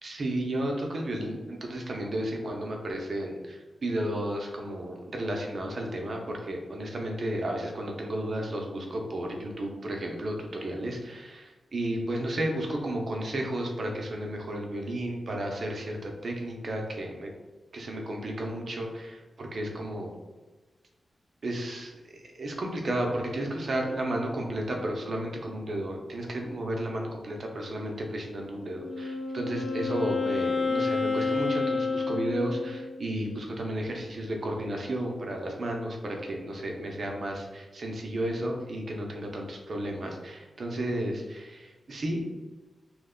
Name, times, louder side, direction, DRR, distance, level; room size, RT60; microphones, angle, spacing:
voice 1, 0.0-17.3 17.7-20.1 21.4-42.2, right 1 dB, 50° right, 1 dB, 0.5 m, -33 dB
Wind instrument woodwind instrument, 28.6-33.0, left 4 dB, 60° left, 0.4 m, -29 dB
3.0 x 2.1 x 3.6 m, 1.2 s
wide cardioid pair, 150°, 0 cm